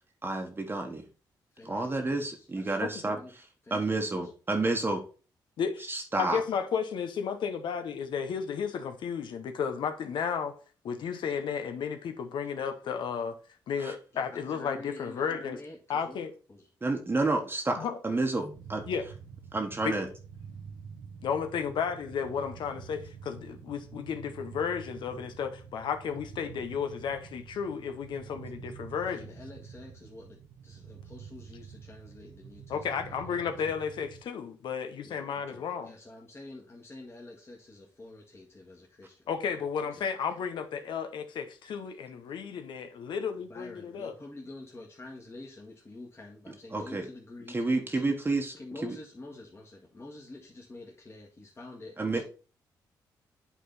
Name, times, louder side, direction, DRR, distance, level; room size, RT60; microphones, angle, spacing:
voice 1, 0.2-1.0 1.6-3.4 3.7-5.0 5.9-6.4 13.8-13.9 16.8-18.8 19.5-20.1 46.7-47.0 47.5-48.5 48.8-49.0 52.0-52.2, right 2 dB, 25° right, 1.2 m, -30 dB
voice 2, 1.5-2.9 3.2-3.3 3.6-4.2 14.1-16.7 29.1-33.7 35.0-39.2 39.9-40.1 43.5-52.2, left 2 dB, 30° left, 1.8 m, -48 dB
voice 3, 5.6-10.5 10.8-13.4 13.7-15.6 15.9-16.3 17.8-18.0 18.9-19.1 19.8-19.9 21.2-29.4 32.7-35.9 39.3-44.1, left 6 dB, 70° left, 0.7 m, -33 dB
sound 1, 18.5-34.2, right 6 dB, 75° right, 0.8 m, -47 dB
8.3 x 3.8 x 4.0 m
supercardioid pair, 65°, 8 cm